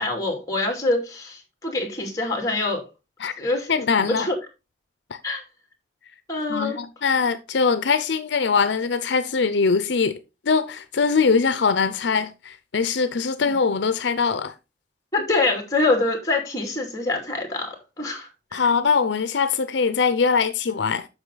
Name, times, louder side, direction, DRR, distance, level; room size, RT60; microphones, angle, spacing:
voice 1, 0.0-2.8 3.4-3.7 4.1-4.3 5.2-5.4 6.3-6.8 13.4-13.5 15.1-18.6, left 2 dB, 20° left, 2.6 m, -25 dB
voice 2, 3.7-4.3 5.1-5.2 6.5-10.2 10.5-14.5 18.5-21.1, left 5 dB, 75° left, 0.6 m, -22 dB
8.0 x 6.1 x 3.9 m
head